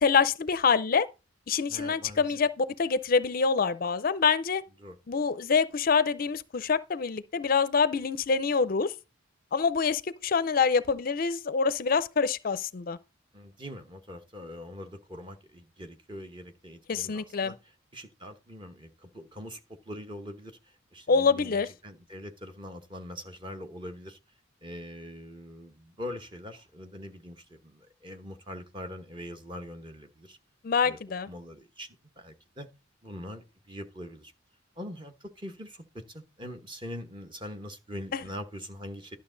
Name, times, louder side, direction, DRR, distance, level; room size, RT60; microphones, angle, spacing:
voice 1, 0.0-1.1 1.5-4.6 5.1-8.9 9.5-13.0 16.9-17.5 21.1-21.7 30.6-31.3 38.1-38.2, left 5 dB, 45° left, 0.5 m, -26 dB
voice 2, 1.7-2.2 4.8-5.0 13.3-17.6 17.9-20.6 20.9-24.2 24.6-30.4 30.8-31.0 31.3-31.9 32.2-32.7 33.0-34.3 34.8-39.2, equal, 25° right, 1.0 m, -43 dB
11.5 x 6.5 x 3.9 m
head